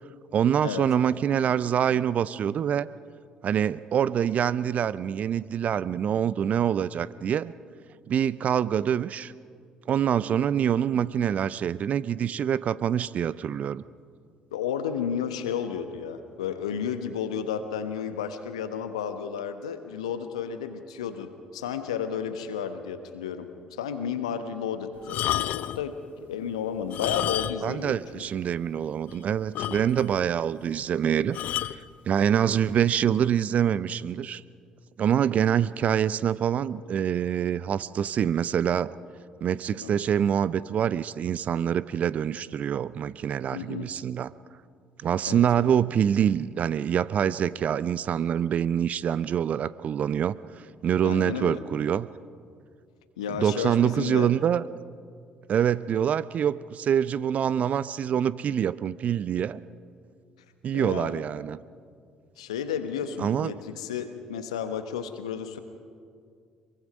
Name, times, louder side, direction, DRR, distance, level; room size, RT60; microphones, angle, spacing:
voice 1, 0.3-2.9 3.4-7.5 8.1-9.3 9.9-13.8 27.6-31.4 31.7-34.4 35.0-38.9 39.4-44.3 45.0-50.4 50.8-52.1 53.3-54.6 55.5-59.6 60.6-61.6 63.2-63.5, right 9 dB, 45° right, 18 dB, 0.5 m, -25 dB
voice 2, 14.5-23.5 23.8-28.0 39.8-40.0 43.5-43.9 45.3-45.4 51.0-51.6 53.2-54.3 60.7-61.2 62.4-65.6, left 8 dB, 80° left, 9 dB, 1.2 m, -32 dB
sound 1, 25.0-25.9 26.8-27.8 28.1-28.2 28.7-28.8 29.1-29.2 29.6-30.2 31.3-31.8 32.7-32.9, left 13 dB, 55° left, 0.4 m, -30 dB
23.5 x 23.0 x 5.2 m, 2.2 s
figure-of-eight pair, 50°, 3 cm